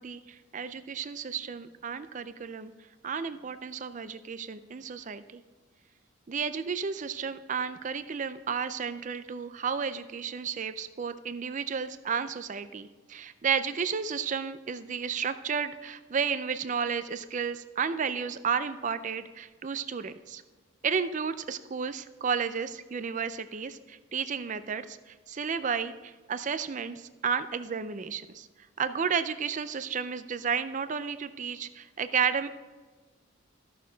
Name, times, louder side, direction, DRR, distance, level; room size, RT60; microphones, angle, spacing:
voice 1, 0.0-2.7 3.0-5.4 6.3-20.4 20.8-25.0 25.3-28.5 28.8-32.5, right 6 dB, 40° right, 12 dB, 0.4 m, -32 dB
14.0 x 6.5 x 3.9 m, 1.3 s
head